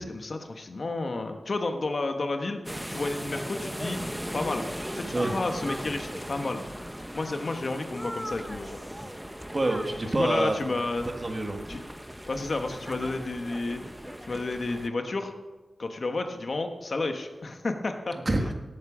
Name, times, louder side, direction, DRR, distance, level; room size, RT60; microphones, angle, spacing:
voice 1, 0.0-2.6 2.9-4.0 4.3-4.7 4.9-6.6 7.1-8.8 10.2-11.1 11.7-11.8 12.3-13.8 14.2-15.3 15.8-18.2, left 2 dB, 50° left, 6 dB, 1.3 m, -31 dB
sound 1, 2.7-14.9, equal, 5° right, 0.8 m, -38 dB
voice 2, 9.5-10.5 11.2-11.6 18.2-18.5, right 2 dB, 30° right, 4 dB, 1.7 m, -26 dB
18.0 x 8.7 x 6.2 m, 1.2 s
wide cardioid pair, 120°, 0 cm